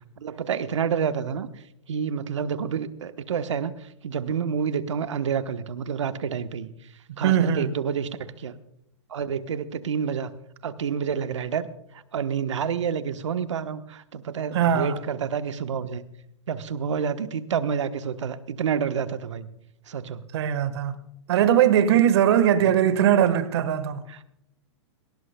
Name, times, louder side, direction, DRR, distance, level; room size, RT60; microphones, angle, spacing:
voice 1, 0.2-1.5 1.9-6.7 7.2-8.5 9.1-10.3 10.6-11.7 11.9-16.0 16.5-19.5 19.9-20.2 22.6-22.7 24.1-24.2, right 7 dB, 85° right, 1.1 m, -28 dB
voice 2, 7.1-7.7 14.5-15.0 20.3-21.0 21.3-24.0, right 10 dB, 60° right, 1.4 m, -20 dB
18.5 x 18.0 x 2.2 m
hypercardioid pair, 135°, 15 cm